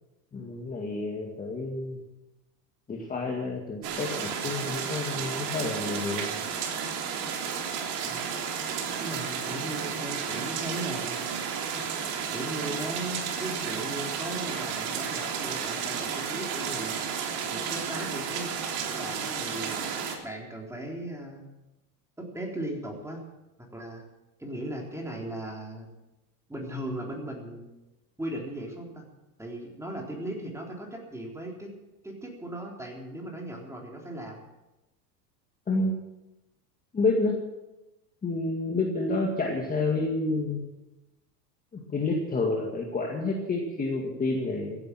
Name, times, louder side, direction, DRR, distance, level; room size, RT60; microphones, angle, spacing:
voice 1, 0.3-2.0 2.9-6.4 35.7-35.9 36.9-37.4 38.2-40.6 41.7-44.9, left 3 dB, 15° left, 0 dB, 2.1 m, -29 dB
sound 1, 3.8-20.2, right 7 dB, 65° right, 3.5 m, -32 dB
voice 2, 8.0-8.4 9.0-11.3 12.3-17.0 17.5-18.5 18.9-19.8 20.2-21.5 22.2-23.2 23.7-24.1 24.4-25.9 26.5-27.7 28.2-29.1 29.4-31.7 32.0-34.4, right 1 dB, 5° right, 0 dB, 3.7 m, -37 dB
15.5 x 11.0 x 7.5 m, 1.0 s
supercardioid pair, 125°, 48 cm